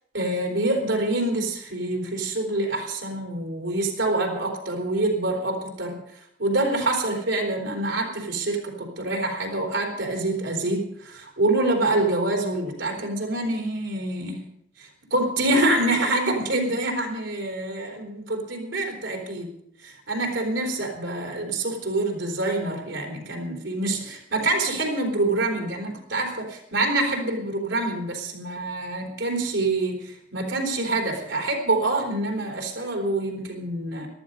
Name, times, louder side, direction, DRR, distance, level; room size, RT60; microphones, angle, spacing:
voice 1, 0.1-6.0 6.4-14.5 14.8-19.5 19.8-34.1, right 2 dB, 80° right, 1 dB, 3.9 m, -26 dB
14.0 x 13.0 x 5.4 m, 0.76 s
head